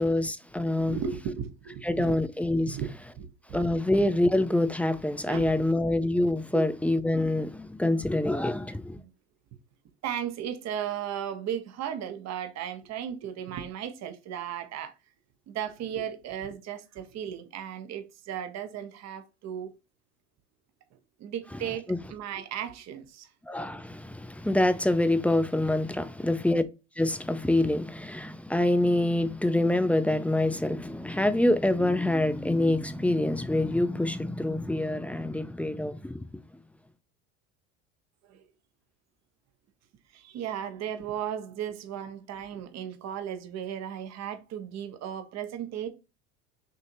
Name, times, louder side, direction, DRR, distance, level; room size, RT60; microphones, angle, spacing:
voice 1, 0.0-1.0 1.8-2.8 3.5-9.0 21.9-22.0 23.5-26.6 27.0-36.3, left 1 dB, 5° left, 0.4 m, -26 dB
voice 2, 0.7-2.1 2.7-2.9 3.2-3.6 5.3-5.7 6.5-6.6 10.0-14.9 15.5-19.7 21.2-23.3 38.3-38.4 40.1-45.9, right 9 dB, 50° right, 1.1 m, -35 dB
6.5 x 2.8 x 2.7 m
supercardioid pair, 95°, 35 cm